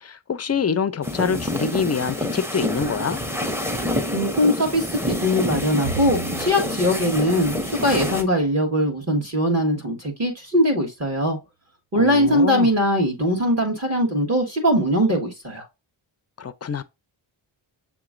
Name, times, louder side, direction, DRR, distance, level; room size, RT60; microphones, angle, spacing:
voice 1, 0.0-3.2 12.0-12.7 16.4-16.8, left 6 dB, 35° left, 0.4 m, -25 dB
sound 1, 1.0-8.2, left 1 dB, 5° right, 0.7 m, -27 dB
voice 2, 4.1-11.4 11.9-15.6, equal, 35° right, 1.4 m, -21 dB
Bowed string instrument, 5.8-9.2, right 4 dB, 60° right, 1.1 m, -37 dB
7.2 x 3.0 x 2.4 m
wide cardioid pair, 120°, 49 cm